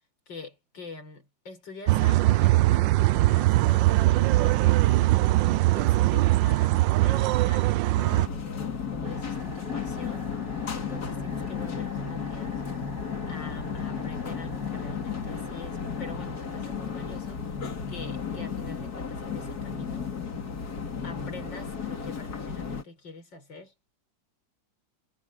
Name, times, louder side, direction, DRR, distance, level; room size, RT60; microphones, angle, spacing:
voice 1, 0.3-5.1 5.7-12.6 13.3-17.4 17.9-20.1 21.0-23.9, left 2 dB, 85° left, 5.2 m, -45 dB
sound 1, 1.9-8.3, right 17 dB, 85° right, 1.4 m, -21 dB
sound 2, 8.0-22.8, left 6 dB, 55° left, 2.8 m, -34 dB
sound 3, 9.0-17.9, left 1 dB, 30° right, 4.8 m, -49 dB
omnidirectional pair, 2.0 m